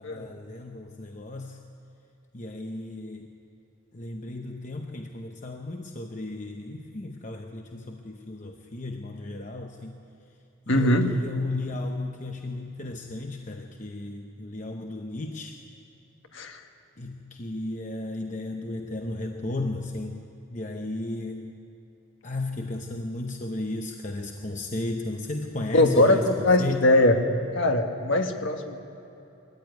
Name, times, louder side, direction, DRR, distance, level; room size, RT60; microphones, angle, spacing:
voice 1, 0.0-1.6 2.3-3.3 3.9-10.0 10.7-15.6 17.0-20.2 20.5-21.5 22.2-26.8, left 2 dB, 35° left, 3 dB, 0.8 m, -34 dB
voice 2, 10.7-11.1 16.3-16.6 25.7-27.2 27.5-28.8, left 1 dB, 55° left, 4 dB, 1.6 m, -21 dB
21.5 x 14.0 x 9.3 m, 2.9 s
head